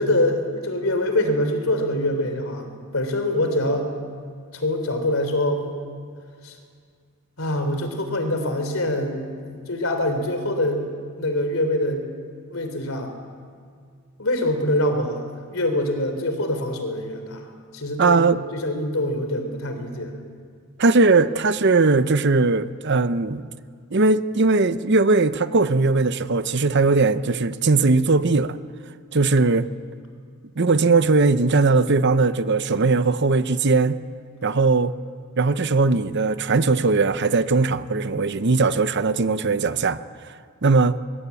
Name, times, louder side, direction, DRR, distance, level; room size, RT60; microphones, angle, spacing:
voice 1, 0.0-3.9 4.5-5.8 6.4-6.5 7.4-10.9 11.2-12.0 12.5-13.1 14.2-15.3 15.5-17.4 17.7-20.1, left 1 dB, 70° left, 3.5 m, -24 dB
voice 2, 18.0-18.4 20.8-23.4 23.9-28.6 29.1-29.7 30.6-34.0 34.4-34.9 35.4-40.0 40.6-41.0, right 3 dB, 55° right, 0.8 m, -19 dB
22.5 x 21.5 x 8.5 m
head